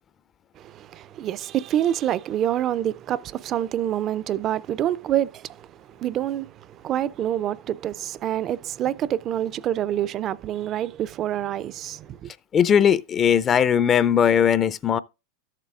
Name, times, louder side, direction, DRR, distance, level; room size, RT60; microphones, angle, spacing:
voice 1, 0.6-12.3, right 11 dB, 40° right, 0.4 m, -27 dB
voice 2, 12.5-15.0, left 8 dB, 30° left, 0.4 m, -19 dB
13.0 x 7.4 x 2.4 m
hypercardioid pair, 110°, 0 cm